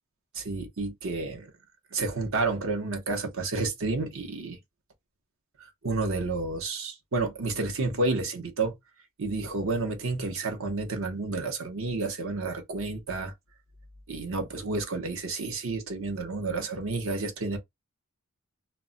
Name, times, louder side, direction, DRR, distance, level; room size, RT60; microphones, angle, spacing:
voice 1, 0.3-1.5 1.9-4.6 5.6-8.7 9.2-13.3 14.1-17.6, right 3 dB, 70° right, 0.8 m, -30 dB
2.2 x 2.1 x 3.7 m
head